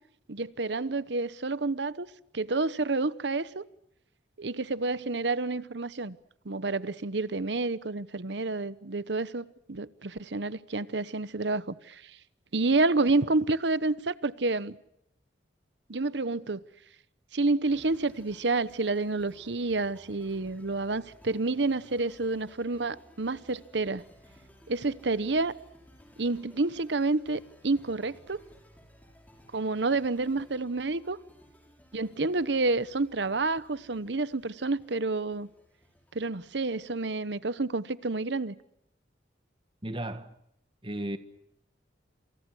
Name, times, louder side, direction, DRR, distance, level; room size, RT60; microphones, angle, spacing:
voice 1, 0.3-2.1 2.3-3.6 4.4-6.2 6.4-12.1 12.5-14.8 15.9-16.6 17.3-24.0 24.7-25.6 26.2-28.4 29.5-31.2 31.9-35.5 36.1-38.5, right 3 dB, 70° right, 1.0 m, -29 dB
sound 1, 17.7-37.0, equal, 10° left, 6.6 m, -58 dB
voice 2, 39.8-40.3 40.8-41.2, right 1 dB, 30° right, 1.6 m, -34 dB
28.0 x 28.0 x 6.3 m
head